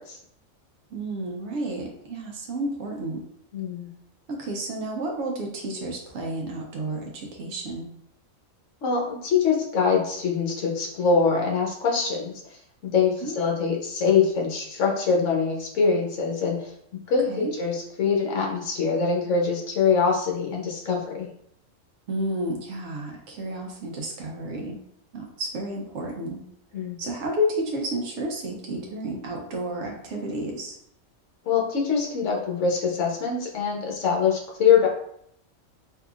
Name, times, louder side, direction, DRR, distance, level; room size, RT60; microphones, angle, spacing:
voice 1, 0.9-3.2 4.3-7.9 13.2-13.3 17.3-17.5 22.1-24.8 25.1-26.4 27.0-30.8, right 1 dB, 65° right, 0 dB, 0.8 m, -31 dB
voice 2, 3.5-3.9 8.8-12.3 12.8-16.7 17.1-21.3 26.7-27.0 31.5-34.9, left 5 dB, 65° left, -1 dB, 1.1 m, -23 dB
3.5 x 2.7 x 2.3 m, 0.70 s
omnidirectional pair, 1.4 m